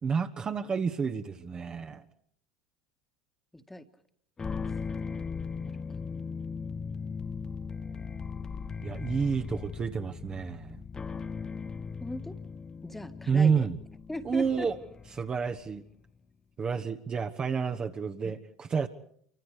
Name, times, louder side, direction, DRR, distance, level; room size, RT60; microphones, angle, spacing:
voice 1, 0.0-2.0 8.8-10.8 13.3-13.8 14.2-14.7 15.1-15.8 16.6-18.9, right 6 dB, 30° right, 5 dB, 1.3 m, -29 dB
voice 2, 3.5-3.9 5.7-5.8 12.0-12.4 12.8-13.7 14.1-14.8 18.2-18.4, left 1 dB, 5° left, 8 dB, 1.8 m, -39 dB
sound 1, 4.4-15.8, left 5 dB, 25° left, 0.8 m, -38 dB
28.0 x 24.5 x 5.0 m, 0.66 s
hypercardioid pair, 80°, 3 cm